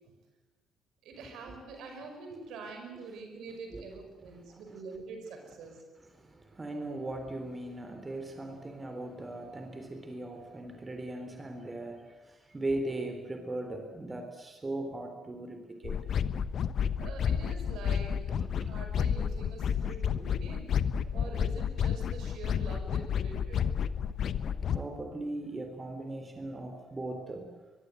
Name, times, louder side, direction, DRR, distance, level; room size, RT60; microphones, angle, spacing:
voice 1, 1.0-5.8 17.0-18.3 18.7-20.7 21.1-23.6, right 4 dB, 60° right, 4 dB, 5.5 m, -45 dB
voice 2, 6.1-16.0 18.4-18.7 24.4-27.5, right 2 dB, 25° right, 5 dB, 3.6 m, -39 dB
sound 1, 15.8-24.8, left 8 dB, 50° left, 1.0 m, -31 dB
23.0 x 22.5 x 7.9 m, 1.2 s
figure-of-eight pair, 45°, 0 cm